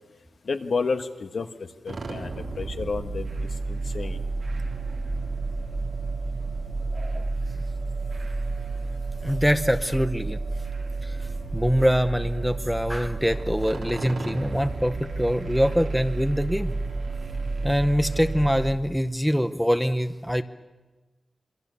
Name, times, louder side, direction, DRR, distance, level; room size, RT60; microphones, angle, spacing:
voice 1, 0.4-1.5 1.8-3.3 3.7-4.2, left 4 dB, 65° left, 7 dB, 1.4 m, -30 dB
sound 1, 1.9-18.7, right 3 dB, 80° right, 3.4 m, -31 dB
voice 2, 6.9-7.3 9.2-10.4 11.0-16.7 17.6-20.4, equal, ahead, 10 dB, 0.7 m, -24 dB
26.5 x 22.5 x 6.9 m, 1.2 s
wide cardioid pair, 115°, 0 cm